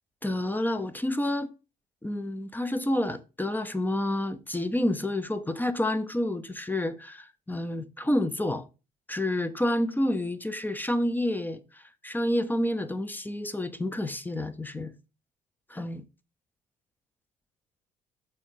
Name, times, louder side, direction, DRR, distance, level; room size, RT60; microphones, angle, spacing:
voice 1, 0.2-1.5 2.0-8.6 9.1-14.9 15.7-16.0, left 1 dB, 10° left, 0.8 m, -29 dB
7.1 x 4.1 x 4.9 m
figure-of-eight pair, 50°, 21 cm